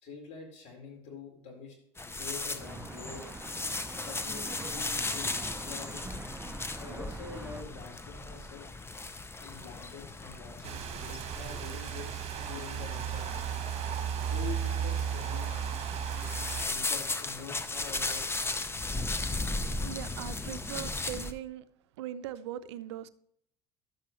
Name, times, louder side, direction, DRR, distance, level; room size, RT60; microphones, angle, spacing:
voice 1, 0.0-1.8 2.2-3.2 4.0-6.0 6.8-8.7 9.4-13.6 14.2-15.6 16.6-18.5, left 5 dB, 60° left, 4.2 m, -46 dB
sound 1, 2.0-21.3, left 2 dB, 15° left, 0.8 m, -37 dB
Traffic noise roadway noise, 2.6-7.6, right 3 dB, 15° right, 0.5 m, -45 dB
sound 2, 10.6-16.6, right 9 dB, 45° right, 1.3 m, -34 dB
voice 2, 19.7-21.7 22.0-23.1, right 11 dB, 90° right, 0.5 m, -40 dB
12.0 x 7.6 x 3.1 m
hypercardioid pair, 80°, 14 cm